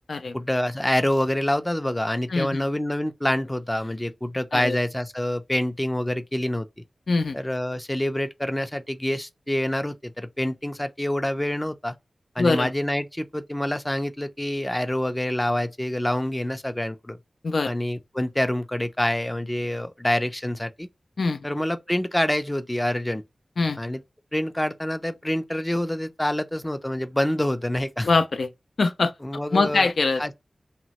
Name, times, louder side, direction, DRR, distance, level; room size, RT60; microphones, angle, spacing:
voice 1, 0.3-6.7 7.3-12.0 12.4-17.2 17.7-20.9 21.4-23.2 23.8-24.0 24.3-28.1 29.2-29.9 30.2-30.3, left 1 dB, 15° left, 0.4 m, -26 dB
voice 2, 2.3-2.6 4.5-4.8 7.1-7.4 12.4-12.7 17.4-17.7 21.2-21.5 23.6-23.8 28.0-28.5 28.8-29.1 29.5-30.2, left 3 dB, 85° left, 0.3 m, -23 dB
2.9 x 2.0 x 2.9 m
wide cardioid pair, 75°, 0 cm